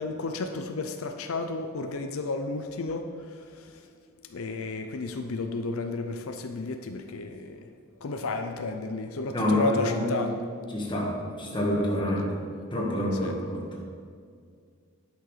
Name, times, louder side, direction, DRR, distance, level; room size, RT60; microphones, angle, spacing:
voice 1, 0.0-3.1 3.5-3.7 4.3-7.7 8.0-10.3 11.7-12.1 13.2-13.4, left 3 dB, 90° left, 6 dB, 0.6 m, -32 dB
voice 2, 9.3-10.2 10.7-11.1 11.4-12.2 12.7-13.6, left 1 dB, 25° left, -2 dB, 1.7 m, -27 dB
10.5 x 6.3 x 5.0 m, 2.1 s
head